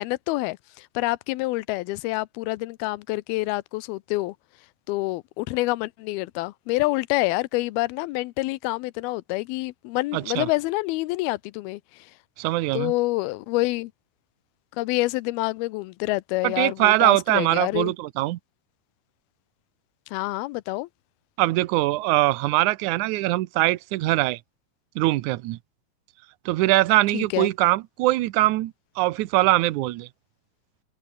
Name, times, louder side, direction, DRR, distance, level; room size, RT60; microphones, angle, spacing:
voice 1, 0.0-4.4 4.9-12.1 12.7-13.9 14.8-17.9 20.1-20.9 27.1-27.5, left 20 dB, 90° left, 2.6 m, -27 dB
voice 2, 10.1-10.5 12.4-12.9 16.4-18.4 21.4-24.4 25.0-25.6 26.5-30.1, right 17 dB, 80° right, 1.8 m, -22 dB
omnidirectional pair, 4.3 m